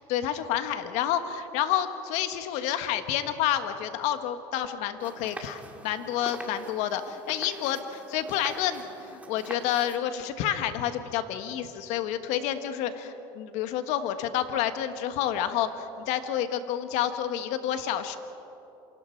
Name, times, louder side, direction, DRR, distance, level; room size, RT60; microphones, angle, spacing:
voice 1, 0.0-18.2, left 10 dB, 70° left, 9 dB, 1.5 m, -29 dB
sound 1, 5.0-10.0, right 2 dB, 10° right, 2.0 m, -44 dB
27.5 x 25.0 x 4.7 m, 2.9 s
supercardioid pair, 105°, 12 cm